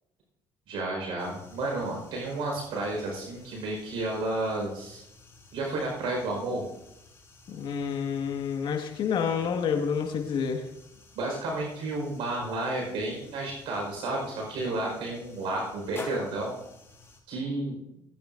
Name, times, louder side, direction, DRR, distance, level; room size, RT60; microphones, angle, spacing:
voice 1, 0.7-5.0 5.5-6.6 11.1-16.6 17.3-17.7, right 2 dB, 70° right, -1 dB, 5.0 m, -31 dB
sound 1, 1.2-17.2, left 2 dB, 30° left, 4.0 m, -51 dB
voice 2, 7.5-10.7, left 6 dB, 65° left, 3 dB, 1.9 m, -29 dB
18.5 x 9.5 x 2.7 m, 0.87 s
supercardioid pair, 75°, 9 cm